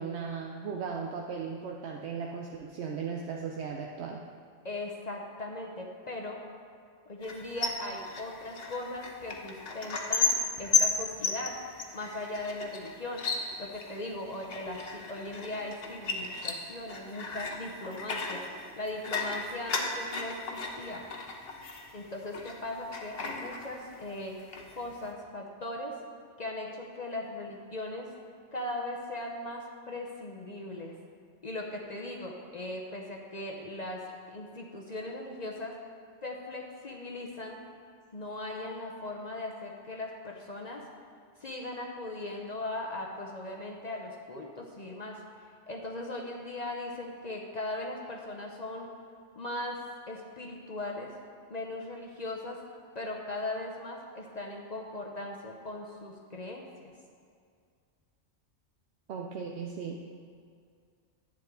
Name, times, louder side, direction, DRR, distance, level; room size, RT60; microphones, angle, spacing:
voice 1, 0.0-4.2 59.1-60.0, right 6 dB, 75° right, 0 dB, 0.9 m, -37 dB
voice 2, 4.6-6.4 7.1-11.6 11.9-13.2 13.6-21.1 21.9-24.4 24.7-25.9 26.4-28.1 28.5-30.9 31.4-35.8 36.2-37.6 38.1-40.8 41.4-45.2 45.7-48.9 49.4-51.1 51.5-52.6 52.9-56.9, left 2 dB, 40° left, 0 dB, 0.8 m, -39 dB
sound 1, 7.2-22.6 22.9-24.1 24.4-25.1, left 4 dB, 60° left, 1.1 m, -34 dB
11.0 x 8.4 x 3.7 m, 2.2 s
omnidirectional pair, 1.2 m